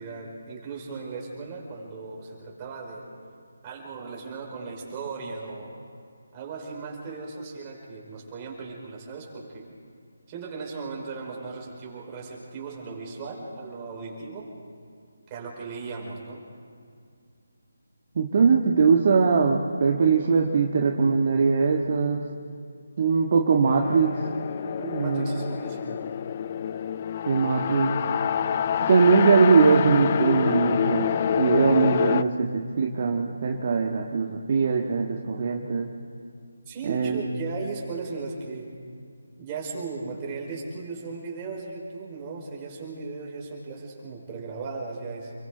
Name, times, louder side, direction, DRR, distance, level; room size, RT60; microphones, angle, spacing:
voice 1, 0.0-3.0 3.6-5.7 6.3-9.6 10.3-14.5 15.3-16.4 24.8-26.0 36.7-38.7 39.4-45.3, right 4 dB, 25° right, -2 dB, 4.8 m, -37 dB
voice 2, 18.1-22.2 23.0-24.2 24.9-25.5 27.3-27.9 28.9-31.1 31.4-35.9 36.8-37.2, right 5 dB, 40° right, 1 dB, 1.5 m, -21 dB
sound 1, 23.7-32.2, left 8 dB, 35° left, 0.5 m, -27 dB
29.5 x 23.0 x 4.0 m, 2.3 s
figure-of-eight pair, 155°, 0 cm